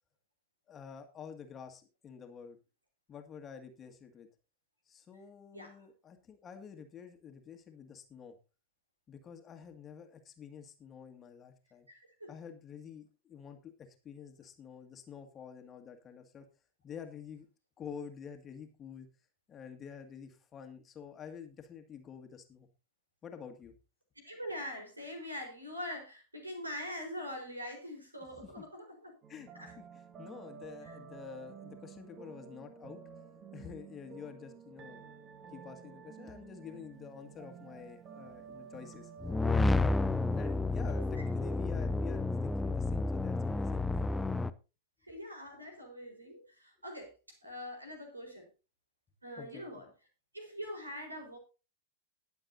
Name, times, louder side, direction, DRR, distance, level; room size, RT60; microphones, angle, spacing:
voice 1, 0.7-2.6 3.1-4.3 4.9-8.4 9.1-11.9 12.3-13.7 14.0-16.5 16.8-17.5 17.8-19.1 19.5-22.7 23.2-23.7 28.3-28.7 29.3-33.0 33.5-35.2 35.5-39.1 40.3-44.0 49.4-49.7, left 7 dB, 25° left, 5 dB, 1.9 m, -48 dB
voice 2, 11.9-12.3 24.2-29.1 29.5-29.7 30.8-30.9 45.0-48.5 49.2-49.9 50.3-51.4, left 1 dB, 85° right, 4 dB, 4.3 m, -43 dB
sound 1, 29.2-39.8, right 7 dB, 30° right, 1.6 m, -51 dB
sound 2, 39.2-44.5, left 2 dB, 5° left, 0.6 m, -30 dB
20.5 x 7.3 x 2.7 m, 0.31 s
figure-of-eight pair, 90°, 0 cm